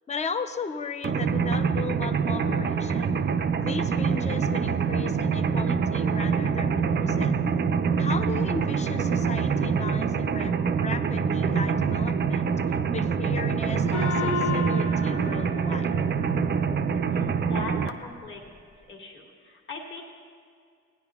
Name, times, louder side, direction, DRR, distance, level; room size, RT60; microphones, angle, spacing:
voice 1, 0.1-3.2 3.6-7.3 8.0-15.9, left 5 dB, 25° left, 9 dB, 0.5 m, -36 dB
Mechanisms, 1.0-17.9, right 6 dB, 35° right, 0.4 m, -25 dB
Gong, 13.9-16.8, left 4 dB, 75° left, 1.1 m, -32 dB
voice 2, 17.1-18.4 18.9-20.0, left 3 dB, 40° left, -2 dB, 1.5 m, -39 dB
16.0 x 9.9 x 2.3 m, 2.1 s
cardioid pair, 90°, 30 cm